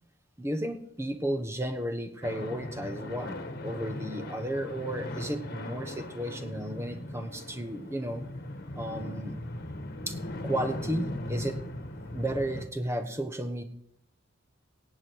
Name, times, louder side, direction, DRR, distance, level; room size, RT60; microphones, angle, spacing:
voice 1, 0.4-8.2 8.7-9.3 10.1-10.2 10.4-11.6 12.1-13.6, right 1 dB, 15° right, 8 dB, 1.2 m, -33 dB
sound 1, 2.2-12.7, left 1 dB, 50° left, 1.5 m, -38 dB
17.5 x 8.6 x 4.7 m, 0.71 s
head